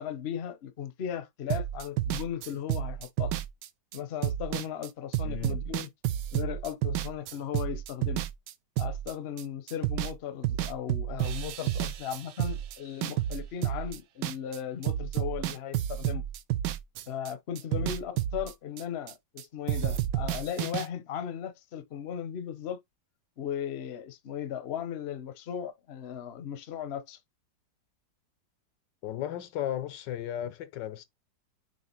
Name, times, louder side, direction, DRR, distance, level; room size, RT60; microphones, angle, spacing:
voice 1, 0.0-3.3 3.9-5.9 6.3-8.2 8.8-16.2 17.1-22.8 23.4-27.2, left 9 dB, 45° left, 0.9 m, -37 dB
sound 1, 1.5-9.4 9.7-10.2 10.4-14.6 14.8-19.4 19.7-20.9, right 13 dB, 75° right, 1.2 m, -31 dB
voice 2, 5.2-5.6 17.8-17.9 29.0-31.0, left 11 dB, 80° left, 1.4 m, -35 dB
7.6 x 2.9 x 4.4 m
omnidirectional pair, 1.9 m